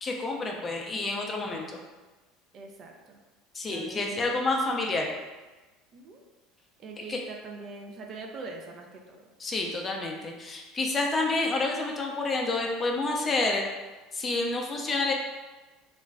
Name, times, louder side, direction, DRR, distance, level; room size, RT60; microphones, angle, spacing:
voice 1, 0.0-1.8 3.5-5.1 7.1-7.2 9.4-13.7 14.1-15.1, left 2 dB, 25° left, 1 dB, 0.5 m, -29 dB
voice 2, 2.5-3.2 3.7-4.4 5.9-6.2 6.8-9.3, right 3 dB, 50° right, 1 dB, 0.4 m, -43 dB
2.4 x 2.1 x 3.3 m, 1.2 s
supercardioid pair, 95°, 0 cm